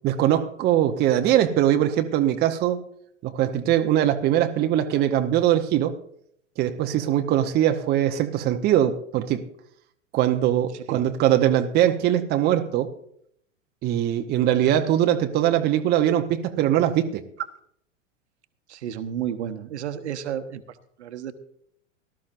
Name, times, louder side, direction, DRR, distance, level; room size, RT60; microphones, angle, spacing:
voice 1, 0.0-2.8 3.2-6.0 6.6-9.4 10.1-12.9 13.8-17.2, right 11 dB, 25° right, 6 dB, 0.8 m, -21 dB
voice 2, 18.7-21.3, right 9 dB, 60° right, 9 dB, 1.1 m, -32 dB
18.0 x 12.5 x 2.6 m, 0.69 s
figure-of-eight pair, 95°, 38 cm